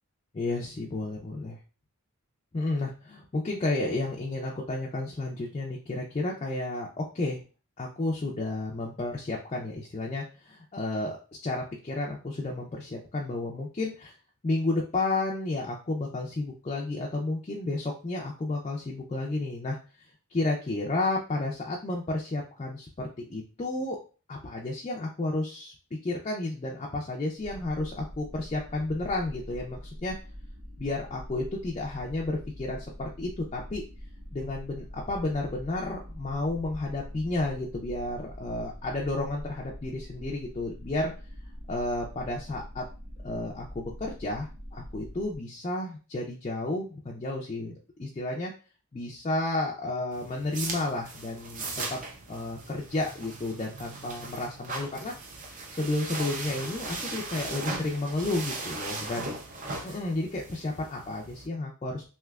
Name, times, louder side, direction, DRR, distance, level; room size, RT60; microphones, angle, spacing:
voice 1, 0.3-1.6 2.5-7.4 7.8-14.1 14.4-24.0 24.3-25.7 26.0-30.2 30.8-33.8 34.3-41.1 41.7-42.8 43.2-47.7 48.0-48.5 48.9-52.0 52.3-55.1 55.7-59.3 59.8-62.1, left 2 dB, 30° left, -2 dB, 0.4 m, -32 dB
sound 1, 27.4-45.4, equal, 85° right, 0.9 m, -44 dB
Undressing-polyester-pants, 50.1-61.5, right 3 dB, 35° right, 0.5 m, -38 dB
3.3 x 2.8 x 2.3 m, 0.35 s
head